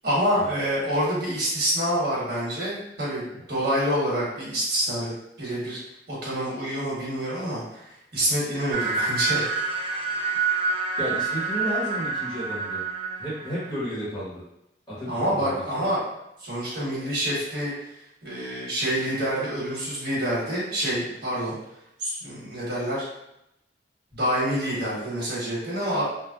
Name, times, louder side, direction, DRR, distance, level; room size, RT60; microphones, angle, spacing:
voice 1, 0.0-5.1 5.4-5.8 6.1-9.5 15.1-16.0 16.4-17.7 18.2-21.6 22.0-23.1 24.1-26.0, equal, 65° right, -7 dB, 1.2 m, -27 dB
sound 1, 8.7-13.8, right 4 dB, 30° right, 0.3 m, -27 dB
voice 2, 11.0-12.8 13.2-14.4 14.9-15.8, equal, 25° left, -9 dB, 1.1 m, -33 dB
3.2 x 2.1 x 2.3 m, 0.84 s
head